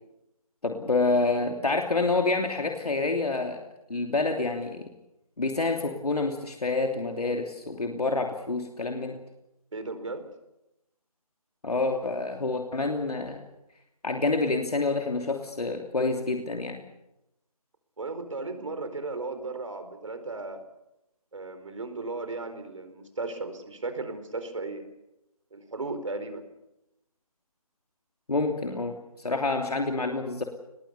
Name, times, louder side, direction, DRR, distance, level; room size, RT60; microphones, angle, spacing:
voice 1, 0.6-3.6 3.9-4.8 5.4-9.2 11.6-13.4 14.0-16.8 28.3-30.4, left 3 dB, 85° left, 3 dB, 3.1 m, -27 dB
voice 2, 9.7-10.2 18.0-20.6 21.3-24.8 25.5-26.4, right 3 dB, 55° right, 9 dB, 4.4 m, -35 dB
25.0 x 21.0 x 7.0 m, 0.88 s
figure-of-eight pair, 170°, 19 cm